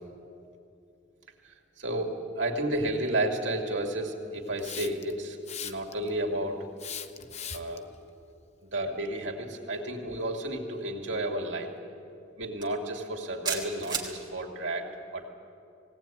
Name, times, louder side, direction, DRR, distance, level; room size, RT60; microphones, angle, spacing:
voice 1, 1.8-6.6 7.2-7.8 8.6-11.7 12.4-15.3, right 1 dB, 70° right, 2 dB, 2.6 m, -32 dB
Hiss, 4.6-5.1 5.5-6.1 6.8-7.8, left 8 dB, 35° left, 0.8 m, -39 dB
sound 1, 12.6-12.8 13.4-14.1, right 6 dB, 25° right, 2.6 m, -31 dB
19.5 x 18.0 x 9.2 m, 2.6 s
head